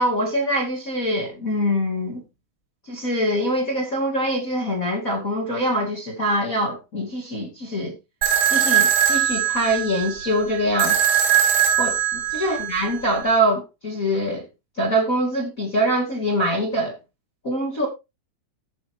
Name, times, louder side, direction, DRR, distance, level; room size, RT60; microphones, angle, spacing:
voice 1, 0.0-2.2 2.9-7.9 8.5-11.0 11.8-14.5 14.8-17.0 17.4-17.9, equal, 35° left, 1.3 m, -24 dB
sound 1, 8.2-13.2, right 9 dB, 85° right, 5.3 m, -21 dB
17.5 x 6.4 x 2.9 m
omnidirectional pair, 5.9 m